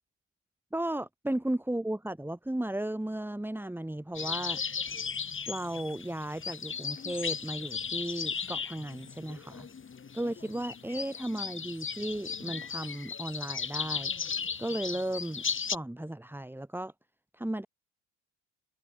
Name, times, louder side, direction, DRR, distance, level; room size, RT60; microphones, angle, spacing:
voice 1, 0.7-4.6 5.5-9.7 10.1-14.1 14.6-16.9 17.3-17.7, right 1 dB, 5° right, 4.6 m, -35 dB
sound 1, 4.1-15.8, left 6 dB, 35° left, 4.1 m, -36 dB
supercardioid pair, 85°, 35 cm